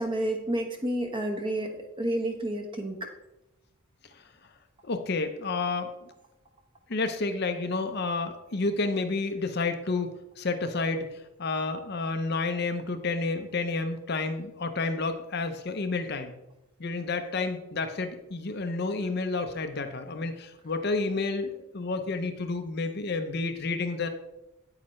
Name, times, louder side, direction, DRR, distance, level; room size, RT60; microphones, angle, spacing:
voice 1, 0.0-3.1, right 1 dB, 25° right, 4 dB, 1.1 m, -30 dB
voice 2, 4.8-6.1 6.9-16.3 16.8-24.1, left 3 dB, 50° left, 7 dB, 0.7 m, -30 dB
8.8 x 8.7 x 3.1 m, 0.91 s
head